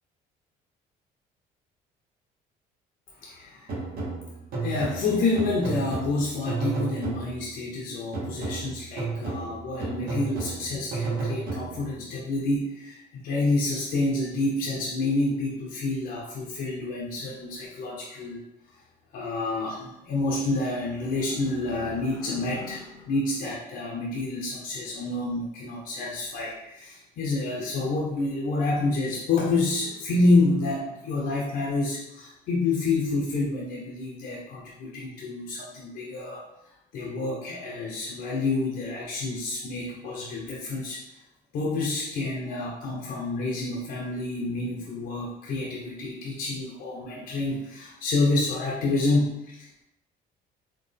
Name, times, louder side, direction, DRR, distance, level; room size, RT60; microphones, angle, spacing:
voice 1, 3.2-3.8 4.6-18.4 19.1-36.4 36.9-41.0 41.5-49.8, left 2 dB, 65° left, -4 dB, 0.9 m, -28 dB
sound 1, 3.7-7.6 8.1-12.0, right 3 dB, 60° right, 1.3 m, -33 dB
4.4 x 3.2 x 3.3 m, 0.85 s
cardioid pair, 110°, 17 cm